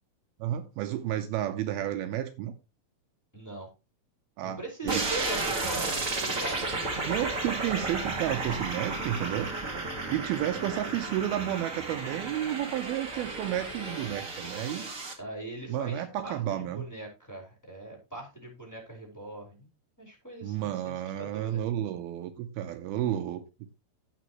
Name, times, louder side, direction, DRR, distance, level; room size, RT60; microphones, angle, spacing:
voice 1, 0.4-2.5 4.4-4.6 4.8-5.0 7.1-9.5 10.1-14.9 15.7-16.9 20.4-23.7, right 12 dB, 80° right, 2.5 m, -31 dB
voice 2, 3.3-3.7 4.4-6.8 10.4-10.9 15.2-19.7 20.0-21.6, right 2 dB, 5° left, 4.3 m, -41 dB
sound 1, 4.9-15.1, right 3 dB, 40° right, 1.2 m, -33 dB
15.5 x 6.0 x 3.0 m
omnidirectional pair, 4.5 m